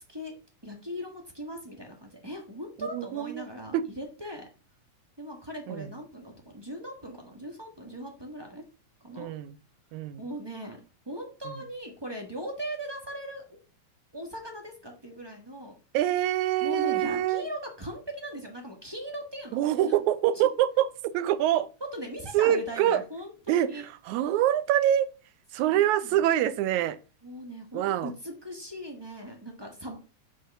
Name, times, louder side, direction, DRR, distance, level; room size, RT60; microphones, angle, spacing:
voice 1, 0.6-4.5 5.2-8.6 9.0-9.3 10.2-10.8 11.1-13.6 14.1-15.7 16.6-19.9 21.9-23.9 25.7-26.2 27.2-30.0, equal, 35° right, 0.4 m, -39 dB
voice 2, 2.8-3.5 3.7-3.8 5.7-5.9 9.2-9.6 9.9-10.2 11.5-11.6 15.9-17.5 19.5-21.7 22.3-23.0 23.5-25.1 25.5-27.0 27.7-28.1, right 12 dB, 85° right, 2.0 m, -25 dB
5.5 x 5.5 x 6.7 m
omnidirectional pair, 3.3 m